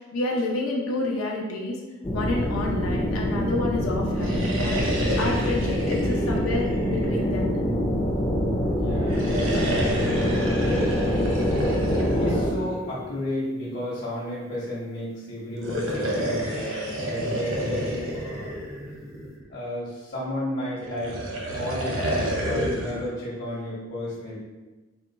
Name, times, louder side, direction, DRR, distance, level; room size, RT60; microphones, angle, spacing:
voice 1, 0.0-1.8 2.1-4.9 5.2-7.6, left 2 dB, 85° left, -2 dB, 0.7 m, -29 dB
sound 1, 2.0-12.5, equal, 15° left, 0.4 m, -25 dB
sound 2, 4.1-7.7 9.0-13.3 15.5-19.5 20.8-23.1, equal, 70° right, 0.8 m, -30 dB
voice 2, 8.6-11.5 12.2-18.5 19.5-21.2 21.5-24.4, left 1 dB, 50° left, -7 dB, 0.9 m, -33 dB
4.2 x 2.2 x 4.0 m, 1.2 s
head